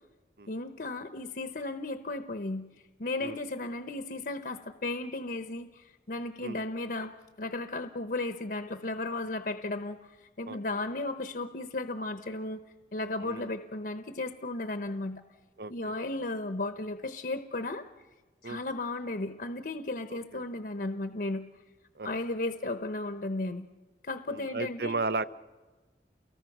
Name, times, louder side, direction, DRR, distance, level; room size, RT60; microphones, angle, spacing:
voice 1, 0.5-2.7 3.0-12.6 12.9-15.2 15.7-17.9 18.4-21.5 22.0-23.7 24.0-25.0, left 2 dB, 55° left, 8 dB, 0.9 m, -35 dB
voice 2, 15.6-15.9 18.4-18.6 20.1-20.4 22.0-22.2 24.3-25.2, right 3 dB, 60° right, 14 dB, 0.7 m, -35 dB
29.5 x 22.0 x 6.1 m, 1.3 s
head